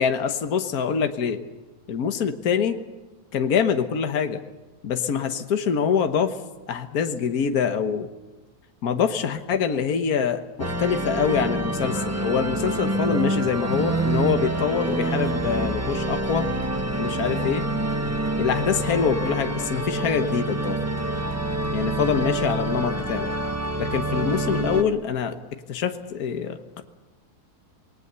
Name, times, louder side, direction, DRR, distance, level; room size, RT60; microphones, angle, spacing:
voice 1, 0.0-1.4 1.9-2.8 3.3-4.4 4.8-6.4 6.7-8.1 8.8-16.4 17.0-17.7 18.4-20.8 21.7-23.3 23.8-25.4 25.7-26.8, left 7 dB, 65° left, 7 dB, 1.7 m, -25 dB
sound 1, 10.6-24.8, right 2 dB, 10° right, 1.1 m, -27 dB
sound 2, 12.8-24.0, right 1 dB, 25° left, 4.0 m, -43 dB
27.5 x 19.5 x 6.9 m, 1.2 s
omnidirectional pair, 1.8 m